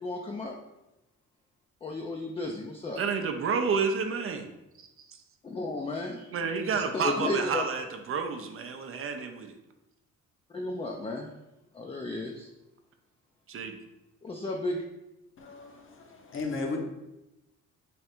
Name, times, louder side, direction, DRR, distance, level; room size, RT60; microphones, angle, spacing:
voice 1, 0.0-0.5 1.8-3.0 5.4-6.3 6.7-7.6 10.5-11.3 11.7-12.5 14.2-14.8, left 2 dB, 20° left, 1 dB, 0.4 m, -33 dB
voice 2, 3.0-4.5 5.0-5.1 6.3-9.5 13.5-13.8, right 5 dB, 45° right, 6 dB, 0.5 m, -30 dB
voice 3, 15.4-15.7 16.3-16.8, left 3 dB, 45° left, 2 dB, 0.8 m, -33 dB
3.4 x 2.4 x 4.3 m, 0.94 s
cardioid pair, 90°, 30 cm